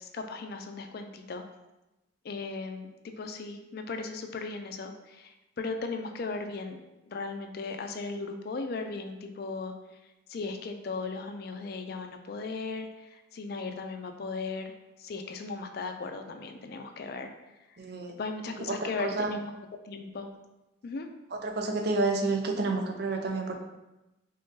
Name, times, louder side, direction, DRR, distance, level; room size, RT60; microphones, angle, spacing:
voice 1, 0.0-1.4 2.2-6.8 7.1-9.7 10.3-14.7 15.0-17.3 17.7-17.8 18.2-19.5 19.9-20.3 20.8-21.1, left 3 dB, 55° left, 6 dB, 0.4 m, -37 dB
voice 2, 17.8-18.1 18.7-19.3 21.3-23.5, right 3 dB, 55° right, 3 dB, 0.5 m, -29 dB
3.7 x 3.6 x 2.7 m, 1.0 s
head